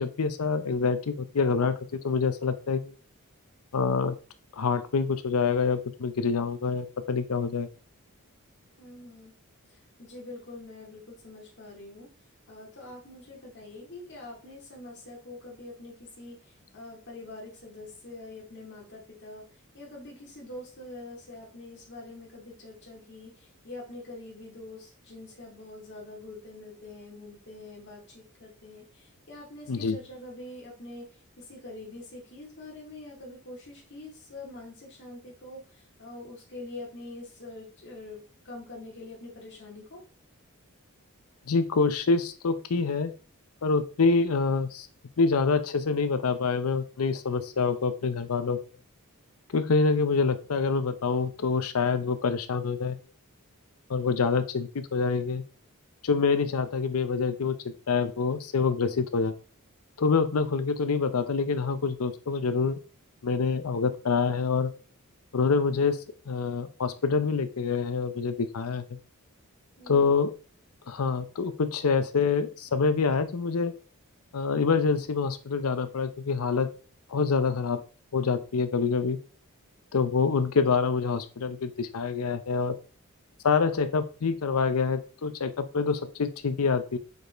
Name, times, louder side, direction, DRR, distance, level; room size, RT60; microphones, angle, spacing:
voice 1, 0.0-1.7 2.0-2.9 3.7-4.2 4.5-7.7 29.7-30.0 41.5-43.1 43.6-44.9 45.2-48.6 49.5-53.0 53.9-55.4 56.0-59.3 60.0-62.8 63.2-64.7 65.3-66.0 66.3-68.8 69.9-70.3 70.9-73.7 74.3-76.7 77.1-77.8 78.1-79.2 79.9-82.7 83.4-87.0, left 4 dB, 80° left, 11 dB, 0.6 m, -26 dB
voice 2, 8.8-9.3 9.7-12.1 12.5-40.0 69.8-70.1, left 2 dB, 55° left, -3 dB, 2.3 m, -45 dB
5.2 x 4.9 x 4.4 m, 0.38 s
head